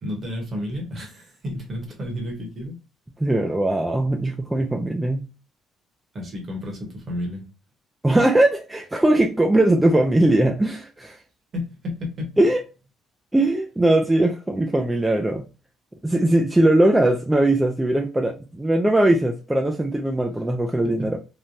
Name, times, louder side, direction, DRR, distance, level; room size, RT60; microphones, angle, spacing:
voice 1, 0.0-2.7 6.1-7.5 11.5-12.3 20.8-21.2, left 1 dB, 35° right, 1 dB, 1.1 m, -31 dB
voice 2, 3.2-5.2 8.0-11.2 12.4-12.6 13.3-15.4 16.0-21.2, right 1 dB, 10° right, 2 dB, 0.3 m, -20 dB
3.1 x 2.1 x 2.6 m, 0.32 s
cardioid pair, 135°, 0 cm